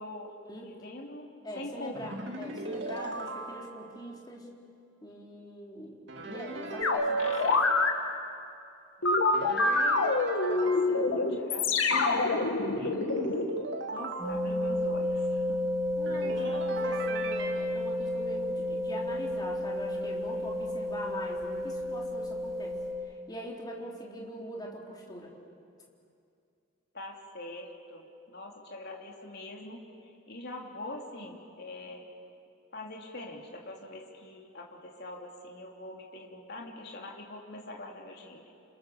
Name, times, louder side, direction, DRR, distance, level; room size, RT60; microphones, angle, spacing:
voice 1, 0.0-2.0 2.8-3.1 9.0-9.8 10.4-13.0 13.9-15.6 16.3-16.6 26.9-32.0 32.7-38.5, left 1 dB, 55° left, 0 dB, 3.1 m, -44 dB
voice 2, 1.4-4.5 5.0-6.0 6.3-7.6 16.0-22.8 23.3-25.3, equal, 20° left, -2 dB, 3.8 m, -42 dB
sound 1, 1.9-3.9 6.1-7.6 9.3-10.9 12.8-14.3 16.1-17.5, right 2 dB, 60° right, 2.5 m, -38 dB
sound 2, 6.8-7.9 9.0-13.4, left 3 dB, 85° left, 2.1 m, -26 dB
sound 3, 14.2-22.9, left 1 dB, ahead, 6.6 m, -32 dB
29.0 x 28.0 x 7.0 m, 2.5 s
head